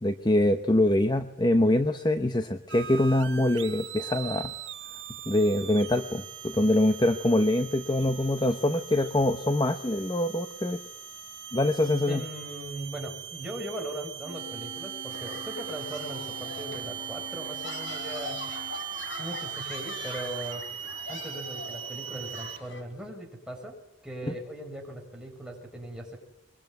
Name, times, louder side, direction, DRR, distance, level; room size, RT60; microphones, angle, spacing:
voice 1, 0.0-4.5 5.3-10.8 11.5-12.2 24.2-24.3, left 1 dB, 25° left, 8 dB, 1.0 m, -24 dB
sound 1, 2.7-22.6, right 10 dB, 80° right, 1.6 m, -40 dB
voice 2, 12.1-18.5 19.2-20.6 21.1-23.7 24.0-26.2, right 1 dB, 5° right, 0 dB, 6.9 m, -39 dB
Wind instrument woodwind instrument, 14.2-18.8, left 1 dB, 25° right, 5.0 m, -47 dB
sound 2, 15.1-22.8, left 3 dB, 75° left, 3.8 m, -42 dB
23.5 x 23.0 x 9.4 m, 0.82 s
head